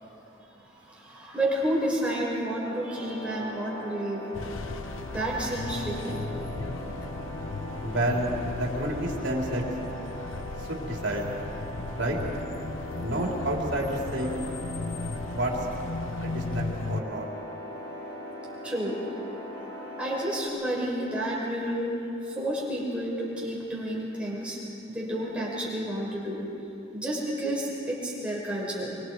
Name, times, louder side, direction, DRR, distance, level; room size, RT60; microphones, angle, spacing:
voice 1, 0.6-4.2 5.1-6.3 18.6-19.0 19.5-21.9 22.2-24.6 24.9-26.5 26.9-29.0, right 1 dB, 5° right, -5 dB, 5.4 m, -31 dB
sound 1, 2.6-20.5, equal, 20° left, 4.1 m, -40 dB
sound 2, 4.3-17.0, left 3 dB, 85° left, 0.7 m, -36 dB
voice 2, 7.8-9.7 10.7-11.2 12.0-12.2 13.0-14.4 15.2-15.5 16.2-17.3, right 1 dB, 65° right, -1 dB, 3.6 m, -29 dB
25.5 x 24.5 x 4.8 m, 2.8 s
head